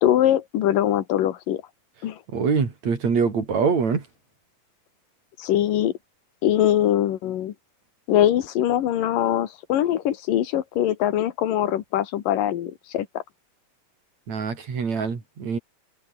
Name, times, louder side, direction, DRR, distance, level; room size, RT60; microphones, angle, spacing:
voice 1, 0.0-1.6 2.0-2.2 5.4-5.9 6.4-7.5 8.1-13.2, left 11 dB, 85° left, 3.2 m, -22 dB
voice 2, 2.3-4.0 14.3-15.6, right 5 dB, 55° right, 5.0 m, -24 dB
omnidirectional pair, 3.8 m